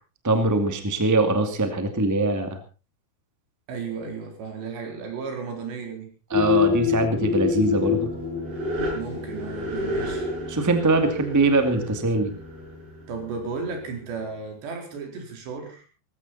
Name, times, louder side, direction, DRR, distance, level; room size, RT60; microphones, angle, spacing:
voice 1, 0.2-2.6 6.3-8.1 10.5-12.3, right 2 dB, 10° right, 7 dB, 0.8 m, -22 dB
voice 2, 3.7-6.1 8.9-10.3 13.1-15.9, right 5 dB, 85° right, 3 dB, 6.3 m, -34 dB
sound 1, 6.3-13.7, left 5 dB, 65° right, 8.6 m, -27 dB
19.5 x 15.5 x 4.2 m, 0.34 s
omnidirectional pair, 4.9 m